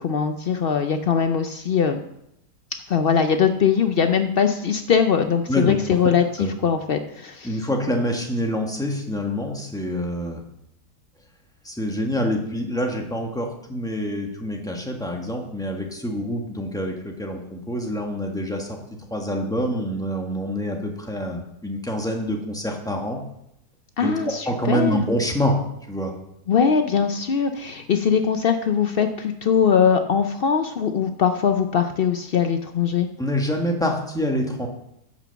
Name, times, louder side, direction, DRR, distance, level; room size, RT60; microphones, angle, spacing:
voice 1, 0.0-2.0 2.9-7.5 24.0-25.0 26.5-33.1, left 7 dB, 75° left, 7 dB, 0.5 m, -21 dB
voice 2, 7.4-10.4 11.6-18.8 19.1-23.2 24.0-24.1 24.5-25.6 25.9-26.1 33.2-34.7, equal, ahead, 1 dB, 1.3 m, -26 dB
10.5 x 6.2 x 7.0 m, 0.79 s
omnidirectional pair, 1.8 m